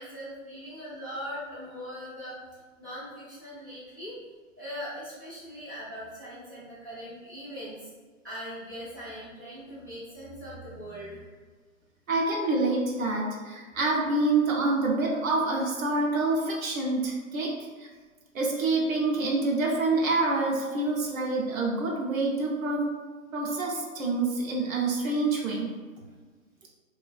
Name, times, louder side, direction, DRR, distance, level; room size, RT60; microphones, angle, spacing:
voice 1, 0.0-2.4 2.8-4.2 4.6-7.9 8.2-11.2, equal, 15° right, -11 dB, 0.3 m, -40 dB
voice 2, 12.1-17.5 17.8-17.9 18.3-22.9 23.3-25.7, right 2 dB, 75° right, -2 dB, 0.7 m, -27 dB
2.4 x 2.3 x 2.3 m, 1.4 s
hypercardioid pair, 135°, 42 cm